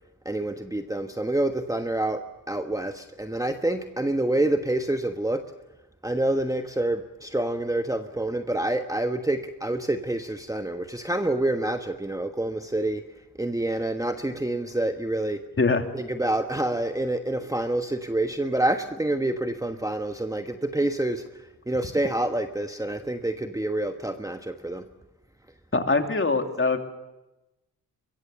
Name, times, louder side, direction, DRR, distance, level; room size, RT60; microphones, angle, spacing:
voice 1, 0.2-5.4 6.0-13.0 13.4-15.4 15.9-21.3 21.7-24.8, right 1 dB, 10° right, 7 dB, 1.2 m, -27 dB
voice 2, 25.7-26.8, left 3 dB, 30° left, 5 dB, 2.9 m, -22 dB
22.5 x 22.5 x 6.9 m, 1.0 s
supercardioid pair, 50°, 41 cm